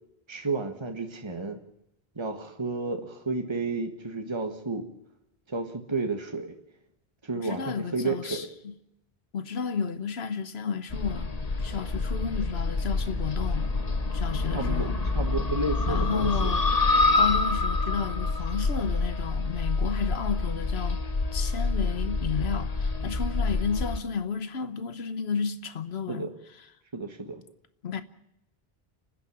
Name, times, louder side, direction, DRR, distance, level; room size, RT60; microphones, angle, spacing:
voice 1, 0.3-1.6 2.1-4.9 5.5-6.5 7.2-8.5 14.5-14.9 15.1-16.5 26.1-26.3 26.9-27.4, right 3 dB, 25° right, 1.6 m, -31 dB
voice 2, 7.3-8.7 9.3-11.3 11.6-13.7 14.1-15.0 15.9-16.6 17.1-21.0 21.3-26.3 27.8-28.0, left 6 dB, 85° left, 1.3 m, -32 dB
sound 1, 10.9-24.0, left 3 dB, 40° left, 1.3 m, -27 dB
30.0 x 10.5 x 10.0 m
omnidirectional pair, 1.0 m